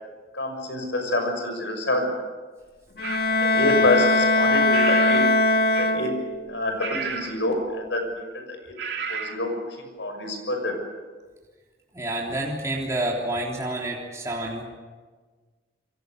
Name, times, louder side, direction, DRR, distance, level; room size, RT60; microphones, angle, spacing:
voice 1, 0.3-2.1 3.4-5.2 5.8-6.1 6.5-8.7 9.1-9.5 10.0-10.7, left 2 dB, 90° left, 5 dB, 6.4 m, -27 dB
Bowed string instrument, 3.0-6.5, left 2 dB, 55° left, 1.8 m, -21 dB
sound 1, 3.0-3.3 4.7-5.4 5.7-6.1 6.8-7.4 8.8-9.4, right 6 dB, 70° right, 2.5 m, -31 dB
voice 2, 11.9-14.7, right 1 dB, 15° right, -3 dB, 3.5 m, -29 dB
28.0 x 23.0 x 6.8 m, 1.4 s
head